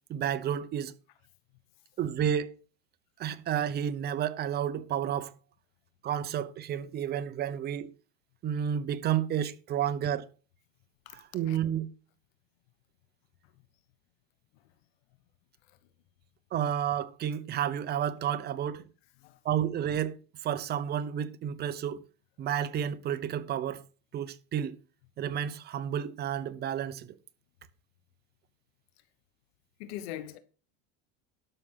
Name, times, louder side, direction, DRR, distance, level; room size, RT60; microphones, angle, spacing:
voice 1, 0.1-0.9 2.0-2.6 3.2-5.3 6.0-7.9 8.4-10.3 11.1-11.9 16.5-18.9 19.4-22.0 22.4-23.8 24.1-24.8 25.2-27.1, right 9 dB, 30° right, 0.9 m, -31 dB
voice 2, 29.8-30.4, left 12 dB, 75° left, 1.3 m, -41 dB
12.0 x 6.1 x 5.7 m
supercardioid pair, 140°, 31 cm